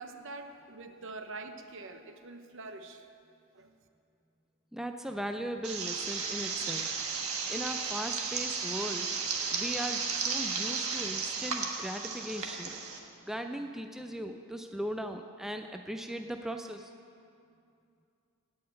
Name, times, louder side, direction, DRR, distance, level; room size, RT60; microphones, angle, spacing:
voice 1, 0.0-3.1 3.5-3.7, right 3 dB, 60° right, 7 dB, 0.9 m, -45 dB
voice 2, 4.7-6.9 7.5-9.1 9.5-12.7 13.2-16.9, equal, ahead, 5 dB, 0.4 m, -38 dB
sound 1, 5.6-13.0, right 5 dB, 90° right, 1.5 m, -34 dB
16.0 x 5.7 x 8.9 m, 2.5 s
head